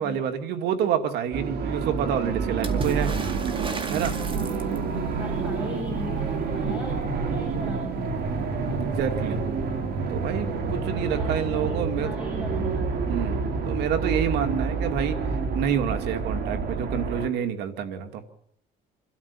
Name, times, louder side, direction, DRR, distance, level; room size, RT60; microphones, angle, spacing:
voice 1, 0.0-3.1 3.9-4.2 8.8-9.4 10.1-12.1 13.1-15.2 15.5-18.2, right 8 dB, 80° right, 7 dB, 2.6 m, -28 dB
sound 1, 1.3-17.3, right 4 dB, 65° right, 3.2 m, -28 dB
Water / Splash splatter, 2.6-5.0 8.3-8.4 8.7-9.4 10.5-10.6, right 3 dB, 30° right, 2.3 m, -35 dB
voice 2, 4.4-8.5 10.7-13.2, left 1 dB, 5° right, 0 dB, 7.5 m, -39 dB
26.5 x 13.0 x 8.7 m, 0.69 s
cardioid pair, 110°, 17 cm